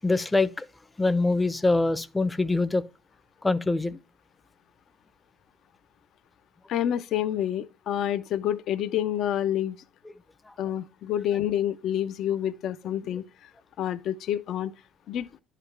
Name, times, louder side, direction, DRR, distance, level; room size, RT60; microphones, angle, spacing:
voice 1, 0.0-0.6 1.0-2.8 3.4-4.0 13.0-13.2, left 3 dB, 15° left, 0.7 m, -24 dB
voice 2, 6.7-9.8 10.6-13.2 13.8-14.7 15.1-15.3, left 11 dB, 60° left, 0.7 m, -28 dB
10.5 x 5.0 x 3.3 m
supercardioid pair, 85°, 0 cm